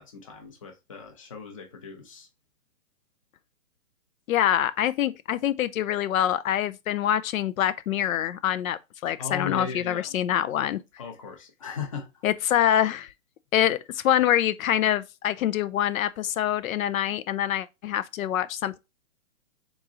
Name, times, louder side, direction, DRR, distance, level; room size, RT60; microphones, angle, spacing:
voice 1, 0.0-2.3 9.2-10.2 11.0-12.2, left 6 dB, 25° left, 0.6 m, -37 dB
voice 2, 4.3-10.8 12.2-13.1 13.5-18.8, left 11 dB, 80° left, 0.5 m, -25 dB
3.7 x 3.0 x 3.7 m
hypercardioid pair, 170°, 41 cm